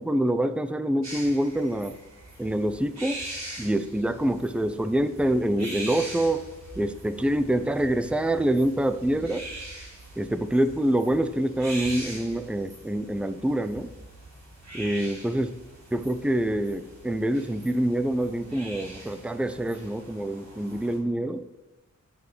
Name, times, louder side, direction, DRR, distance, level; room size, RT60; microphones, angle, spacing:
voice 1, 0.0-2.0 2.4-3.2 3.6-6.4 6.8-9.4 10.2-13.9 14.7-15.5 15.9-21.4, right 1 dB, 5° right, 11 dB, 0.7 m, -26 dB
sound 1, 1.0-21.0, right 1 dB, 60° right, 5.0 m, -42 dB
13.0 x 7.7 x 6.2 m, 1.1 s
wide cardioid pair, 90°, 31 cm